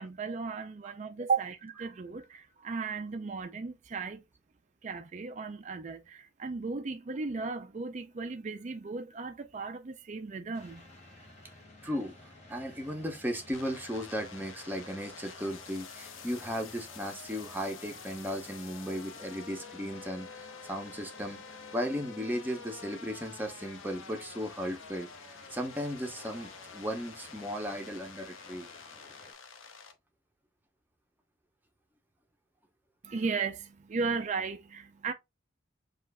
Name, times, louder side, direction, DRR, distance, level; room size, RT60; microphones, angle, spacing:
voice 1, 0.0-4.2 4.8-10.8 33.0-35.1, right 4 dB, 40° right, 0.4 m, -35 dB
sound 1, 10.5-29.3, left 2 dB, 35° left, 1.5 m, -54 dB
voice 2, 11.8-12.1 12.5-21.4 21.7-25.1 25.5-28.7, equal, 10° right, 0.8 m, -36 dB
sound 2, 13.5-29.9, left 5 dB, 90° left, 0.7 m, -49 dB
7.4 x 2.5 x 2.2 m
head